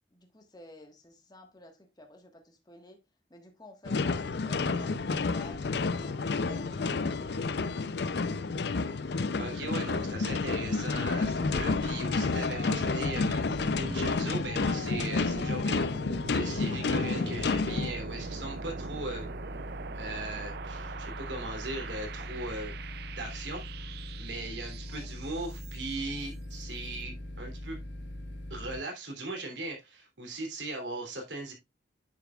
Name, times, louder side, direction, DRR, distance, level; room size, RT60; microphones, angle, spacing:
voice 1, 0.1-7.3 24.8-25.1, left 1 dB, 20° left, 1.4 m, -53 dB
sound 1, 3.9-17.9, left 4 dB, 65° left, 0.5 m, -30 dB
voice 2, 9.4-19.3 19.9-22.7 23.2-23.6 24.2-27.8 28.5-31.5, right 2 dB, 80° right, 3.0 m, -38 dB
sound 2, 12.2-26.1, right 5 dB, 60° right, 0.5 m, -43 dB
sound 3, 17.4-28.8, left 1 dB, 80° left, 1.7 m, -41 dB
9.6 x 6.9 x 2.4 m
head